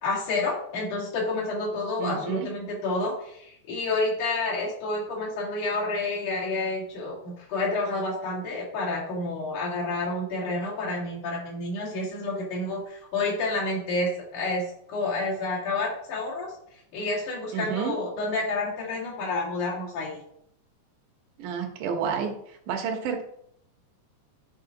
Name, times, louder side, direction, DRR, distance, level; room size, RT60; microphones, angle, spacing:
voice 1, 0.0-16.5 16.9-20.2, left 2 dB, 75° left, -5 dB, 3.8 m, -29 dB
voice 2, 2.0-2.5 17.5-18.0 21.4-22.3 22.7-23.2, right 7 dB, 80° right, 4 dB, 2.6 m, -30 dB
9.5 x 5.0 x 3.8 m, 0.71 s
omnidirectional pair, 3.6 m